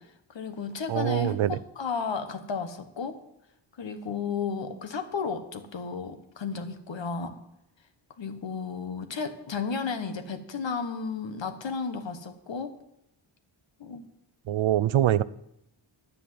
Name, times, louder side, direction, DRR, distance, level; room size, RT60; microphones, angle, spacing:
voice 1, 0.0-3.2 3.8-7.4 8.2-12.7 13.8-14.0, left 5 dB, 65° left, 8 dB, 1.4 m, -33 dB
voice 2, 0.9-1.6 14.5-15.2, right 12 dB, 75° right, 18 dB, 0.6 m, -24 dB
10.0 x 9.3 x 7.7 m, 0.82 s
wide cardioid pair, 105°, 48 cm